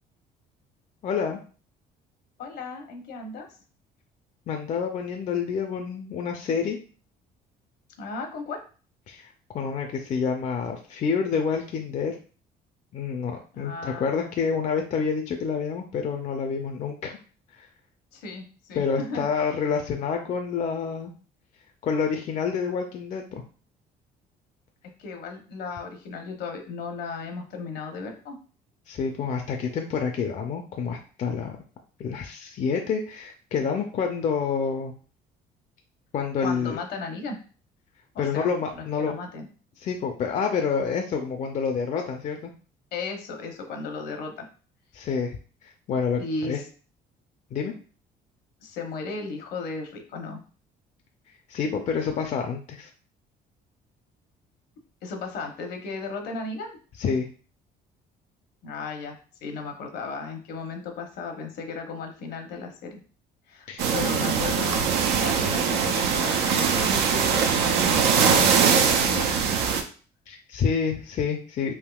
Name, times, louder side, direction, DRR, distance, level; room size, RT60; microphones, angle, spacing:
voice 1, 1.0-1.4 4.5-6.8 9.1-12.2 12.9-17.2 17.5-17.7 18.7-21.1 21.8-23.4 28.9-31.6 32.0-34.9 36.1-36.8 38.2-39.1 39.8-42.5 44.9-45.4 45.6-46.6 47.5-47.7 51.5-52.9 57.0-57.3 63.7-63.9 70.3-71.8, left 6 dB, 45° left, 3 dB, 0.4 m, -28 dB
voice 2, 2.4-3.5 8.0-8.6 13.5-14.4 18.1-19.5 25.0-28.4 36.4-37.4 38.1-38.5 38.7-39.5 42.9-44.5 46.2-46.6 48.6-50.4 55.0-56.8 58.6-63.0 63.5-63.7 63.9-69.7, left 4 dB, 70° left, 4 dB, 0.8 m, -35 dB
sound 1, 63.8-69.8, right 6 dB, 90° right, 0.5 m, -22 dB
3.5 x 2.7 x 2.3 m, 0.38 s
cardioid pair, 110°, 17 cm